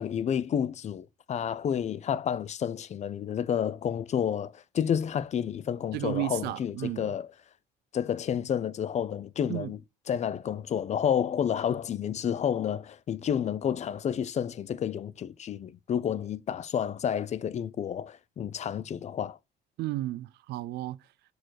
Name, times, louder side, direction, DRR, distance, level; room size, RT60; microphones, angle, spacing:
voice 1, 0.0-7.3 7.9-9.8 10.1-19.4, left 8 dB, 40° left, 0.6 m, -30 dB
voice 2, 5.9-7.1 9.5-9.7 19.8-21.0, right 16 dB, 75° right, 0.5 m, -33 dB
6.0 x 4.6 x 4.6 m
cardioid pair, 110°, 17 cm